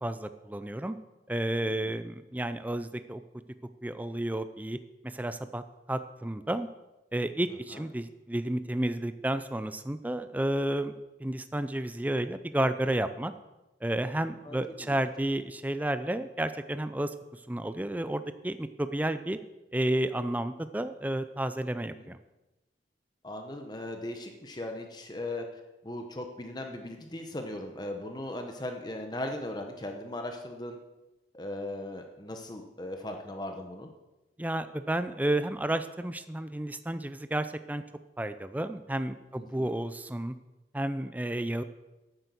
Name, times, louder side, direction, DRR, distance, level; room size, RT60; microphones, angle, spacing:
voice 1, 0.0-1.0 1.3-3.2 3.8-5.6 5.9-6.7 7.1-10.9 11.2-13.3 13.8-19.4 19.7-22.2 34.4-37.8 38.2-40.3 40.7-41.6, right 1 dB, 10° right, 11 dB, 0.4 m, -31 dB
voice 2, 14.4-14.9 21.9-22.1 23.2-25.5 25.8-30.8 31.3-33.9 39.4-39.7, left 1 dB, 25° left, 4 dB, 1.0 m, -38 dB
9.9 x 9.1 x 7.0 m, 1.0 s
head